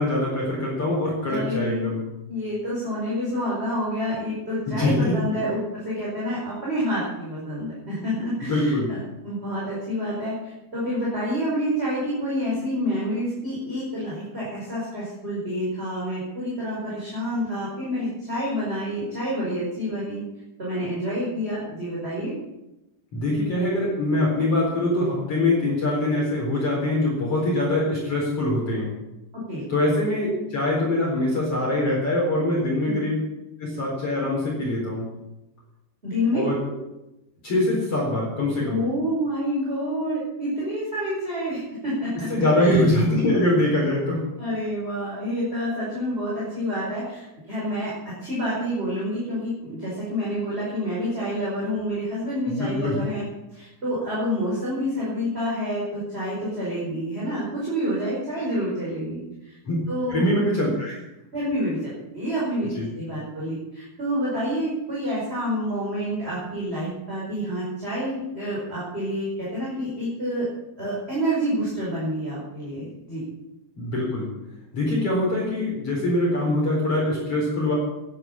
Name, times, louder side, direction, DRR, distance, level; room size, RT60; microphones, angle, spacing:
voice 1, 0.0-2.0 4.7-5.2 8.4-8.9 23.1-28.9 29.7-33.2 33.6-35.1 36.3-36.5 37.4-38.8 42.1-44.2 52.5-53.0 59.7-59.8 60.1-61.0 62.8-62.9 73.8-74.3 74.7-77.7, left 1 dB, 35° left, -4 dB, 4.8 m, -23 dB
voice 2, 1.3-1.9 2.3-20.2 20.6-22.3 29.3-29.6 32.8-33.0 36.0-36.4 38.7-42.8 44.4-53.2 53.5-59.2 59.5-59.6 59.9-60.3 61.3-70.5 70.8-73.2, equal, 15° right, -7 dB, 5.1 m, -28 dB
11.5 x 11.0 x 8.7 m, 0.94 s
omnidirectional pair, 4.9 m